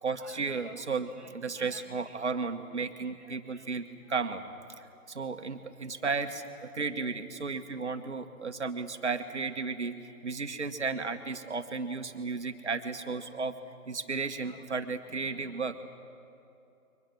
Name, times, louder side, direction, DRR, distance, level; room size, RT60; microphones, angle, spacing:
voice 1, 0.0-4.4 5.1-9.9 10.2-13.6 13.9-15.8, right 4 dB, 50° right, 8 dB, 1.5 m, -34 dB
23.5 x 19.5 x 9.2 m, 2.7 s
figure-of-eight pair, 160°, 45 cm